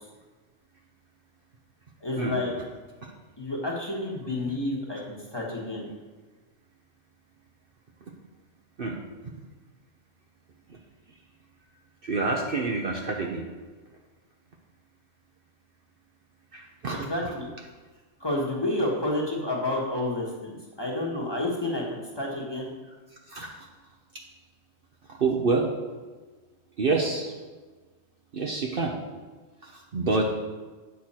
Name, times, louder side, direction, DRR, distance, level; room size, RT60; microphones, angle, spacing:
voice 1, 2.0-2.5 3.4-5.9 16.9-17.5 18.2-22.9, left 1 dB, 20° left, -2 dB, 1.3 m, -30 dB
voice 2, 12.0-13.5 16.5-17.1 23.3-23.7 24.1-24.2 25.1-25.7 26.8-27.3 28.3-28.9 29.6-30.3, right 3 dB, 50° right, 0 dB, 0.9 m, -28 dB
8.5 x 6.1 x 4.3 m, 1.3 s
omnidirectional pair, 1.3 m